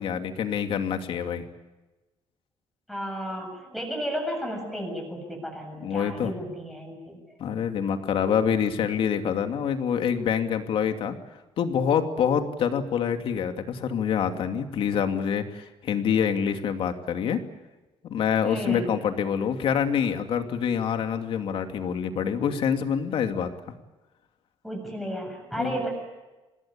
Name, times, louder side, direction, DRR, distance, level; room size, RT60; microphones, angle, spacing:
voice 1, 0.0-1.4 5.8-6.3 7.4-11.1 11.6-17.4 18.1-23.5 25.6-25.8, left 7 dB, 60° left, 6 dB, 2.6 m, -26 dB
voice 2, 2.9-7.4 18.4-18.9 24.6-25.9, equal, ahead, 0 dB, 7.5 m, -33 dB
27.0 x 20.0 x 8.7 m, 1.1 s
cardioid pair, 160°, 10 cm